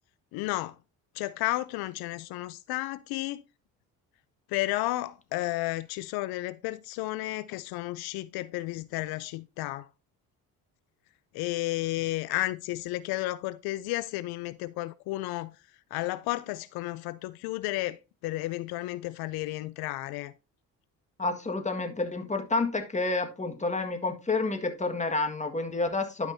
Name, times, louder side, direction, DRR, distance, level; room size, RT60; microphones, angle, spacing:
voice 1, 0.3-0.8 1.1-3.4 4.5-9.9 11.3-15.5 15.9-18.0 18.2-20.3, left 18 dB, 85° left, 0.5 m, -32 dB
voice 2, 21.2-26.3, left 3 dB, 20° left, 1.7 m, -29 dB
12.0 x 5.2 x 2.7 m
supercardioid pair, 80°, 36 cm